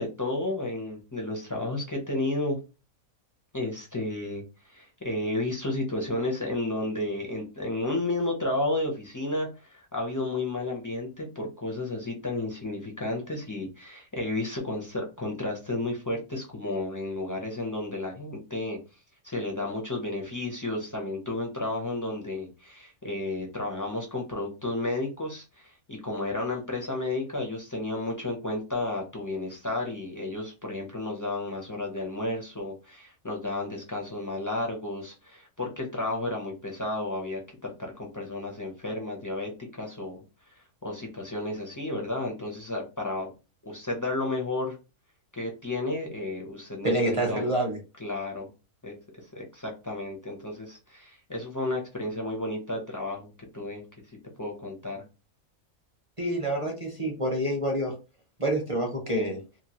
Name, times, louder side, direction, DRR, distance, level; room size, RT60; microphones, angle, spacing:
voice 1, 0.0-2.6 3.5-18.8 19.2-40.2 40.8-43.3 43.6-44.8 45.3-47.5 48.0-48.5 48.8-53.3 53.5-53.8 54.4-55.0, left 2 dB, 30° left, 0 dB, 0.3 m, -32 dB
voice 2, 46.8-47.8 56.2-57.9 58.4-59.4, right 1 dB, 30° right, 0 dB, 0.6 m, -27 dB
2.9 x 2.6 x 2.8 m, 0.30 s
omnidirectional pair, 1.5 m